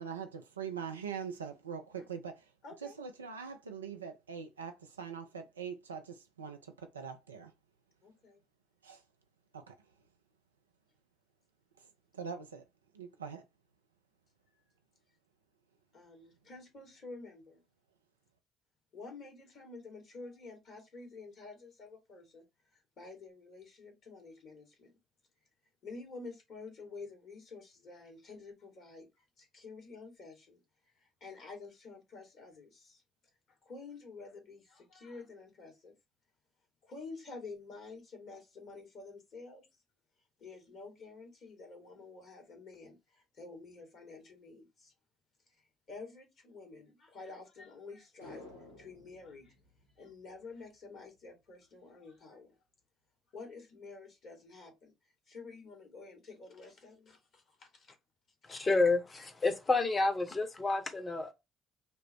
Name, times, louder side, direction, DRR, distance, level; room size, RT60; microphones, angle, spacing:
voice 1, 0.0-2.4 2.8-7.5 8.8-9.0 9.5-9.7 12.1-12.6 12.9-13.4, right 6 dB, 90° right, 0.5 m, -42 dB
voice 2, 2.6-3.0 8.0-8.4 15.9-17.6 18.9-22.4 22.7-24.9 25.8-30.6 31.0-33.0 33.6-35.9 36.8-39.7 40.4-44.9 45.5-48.4 48.8-49.5 50.0-52.6 53.3-54.9 55.3-57.9 58.5-58.6, left 3 dB, 55° left, 2.0 m, -50 dB
sound 1, 48.2-50.7 51.0-51.1, left 2 dB, 90° left, 1.0 m, -54 dB
voice 3, 58.5-61.3, left 3 dB, 30° left, 1.2 m, -29 dB
5.3 x 2.1 x 4.4 m
figure-of-eight pair, 50°, 0 cm